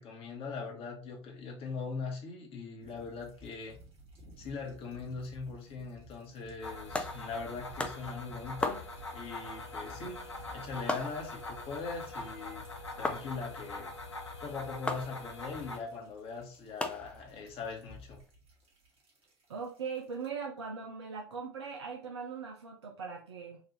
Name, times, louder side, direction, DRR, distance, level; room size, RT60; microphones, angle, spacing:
voice 1, 0.0-3.8 4.4-8.8 9.1-10.2 10.5-12.6 13.0-13.9 14.4-18.2, left 4 dB, 40° left, 1 dB, 1.1 m, -41 dB
sound 1, 2.8-20.3, equal, 40° right, 1.6 m, -57 dB
sound 2, 6.6-15.8, left 2 dB, 85° left, 0.6 m, -43 dB
sound 3, 6.8-18.3, left 2 dB, 10° left, 0.5 m, -41 dB
voice 2, 19.5-23.6, right 5 dB, 75° right, 1 dB, 0.5 m, -40 dB
3.9 x 2.6 x 3.1 m, 0.38 s
figure-of-eight pair, 70°, 14 cm